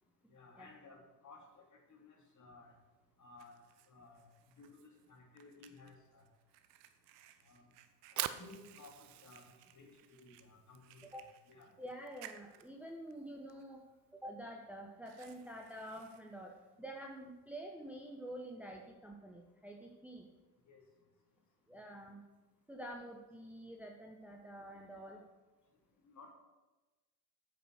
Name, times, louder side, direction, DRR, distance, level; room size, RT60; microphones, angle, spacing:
voice 1, 0.3-2.7 3.2-3.5 3.9-4.2 4.5-6.3 7.4-7.6 8.1-11.7 20.7-20.8 25.1-25.2 26.0-26.3, left 3 dB, 35° left, 0 dB, 2.8 m, -58 dB
Fire, 2.7-17.6, right 11 dB, 75° right, 0.9 m, -63 dB
Fire 2, 7.9-14.1, right 12 dB, 35° right, 0.6 m, -46 dB
voice 2, 11.8-13.9 14.1-20.3 21.7-22.3 22.7-25.2, right 1 dB, 5° right, 1 dB, 1.1 m, -48 dB
8.8 x 6.2 x 6.2 m, 1.1 s
hypercardioid pair, 70°, 49 cm